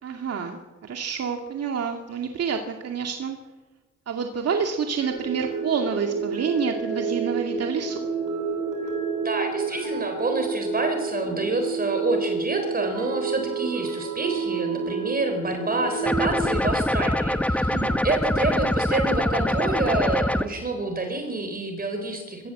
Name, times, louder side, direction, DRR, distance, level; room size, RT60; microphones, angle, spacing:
voice 1, 0.0-3.4 4.1-8.1 17.7-18.0, right 6 dB, 55° right, 3 dB, 2.3 m, -28 dB
sound 1, 5.0-16.6, right 5 dB, 85° right, 5.6 m, -29 dB
voice 2, 9.2-22.5, right 2 dB, 30° right, 6 dB, 4.1 m, -28 dB
sound 2, 16.1-20.5, left 1 dB, 5° left, 1.1 m, -24 dB
24.5 x 15.0 x 7.8 m, 1.2 s
cardioid pair, 90°, 30 cm